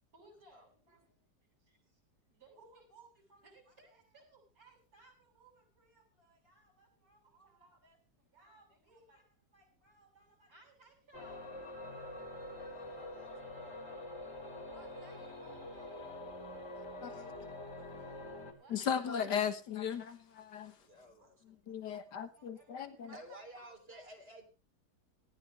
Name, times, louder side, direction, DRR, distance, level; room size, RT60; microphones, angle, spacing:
voice 1, 0.1-1.2 1.6-2.0 2.3-13.2 14.3-16.0 16.6-19.2 21.2-21.6 21.9-24.4, right 2 dB, 60° right, 8.4 m, -64 dB
sound 1, 11.1-18.5, left 1 dB, 40° left, 3.5 m, -46 dB
voice 2, 12.6-13.8 20.8-21.8 23.1-24.4, right 1 dB, 35° right, 3.7 m, -54 dB
voice 3, 16.8-17.3 18.7-20.8 21.4-23.2, left 8 dB, 85° left, 2.1 m, -37 dB
19.0 x 14.5 x 3.4 m
omnidirectional pair, 1.8 m